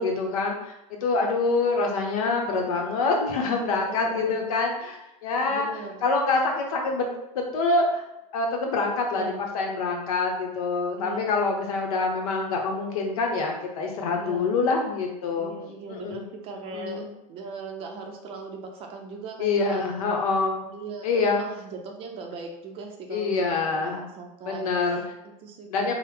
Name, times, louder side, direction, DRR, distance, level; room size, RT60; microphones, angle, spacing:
voice 1, 0.0-5.7 6.0-8.0 8.3-9.3 9.5-15.5 15.9-16.2 16.7-17.1 19.4-20.7 21.0-21.4 23.1-24.0 24.5-25.0 25.7-25.9, left 3 dB, 85° left, 2 dB, 0.8 m, -26 dB
voice 2, 3.7-4.5 5.5-6.1 9.1-9.4 11.0-11.5 14.2-14.5 15.4-19.8 20.7-25.9, right 4 dB, 30° right, 3 dB, 0.5 m, -39 dB
3.2 x 2.0 x 3.2 m, 0.92 s
supercardioid pair, 145°, 18 cm